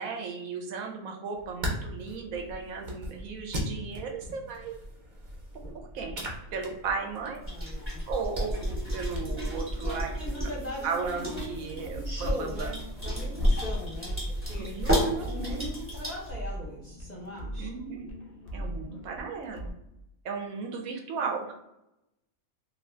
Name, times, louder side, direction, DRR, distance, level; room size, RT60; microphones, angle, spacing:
voice 1, 0.0-4.7 5.7-7.4 8.1-10.1 10.8-12.7 14.6-15.7 17.6-18.1 18.5-19.6 20.2-21.5, right 5 dB, 75° right, 3 dB, 1.0 m, -35 dB
sound 1, 1.3-16.0, equal, 45° right, 0.7 m, -36 dB
voice 2, 7.4-8.0 8.9-9.2 9.7-14.7 15.2-17.8, equal, 40° left, -5 dB, 0.7 m, -40 dB
sound 2, 7.4-16.3, equal, 10° right, 0.9 m, -33 dB
sound 3, 11.5-19.7, right 1 dB, 85° left, 0.3 m, -40 dB
2.7 x 2.4 x 3.1 m, 0.87 s
omnidirectional pair, 1.5 m